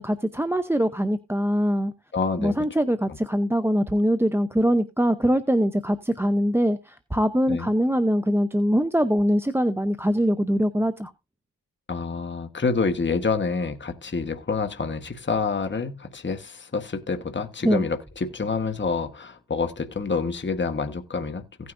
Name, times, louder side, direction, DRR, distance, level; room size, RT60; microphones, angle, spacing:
voice 1, 0.0-1.9 2.4-11.1 17.6-17.9, equal, 5° right, 0.6 m, -23 dB
voice 2, 2.1-2.5 7.5-7.7 11.9-21.7, left 4 dB, 25° left, 1.3 m, -27 dB
16.0 x 9.5 x 2.6 m
cardioid pair, 70°, 45 cm